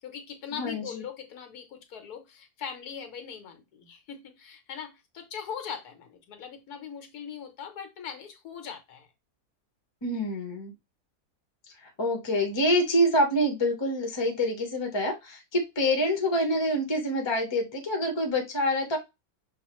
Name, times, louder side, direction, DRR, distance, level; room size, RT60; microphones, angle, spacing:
voice 1, 0.0-9.1, left 7 dB, 85° left, 5 dB, 1.4 m, -40 dB
voice 2, 0.5-1.0 10.0-10.7 11.8-19.0, equal, 20° left, 3 dB, 0.9 m, -26 dB
5.5 x 2.5 x 3.0 m, 0.23 s
omnidirectional pair, 1.6 m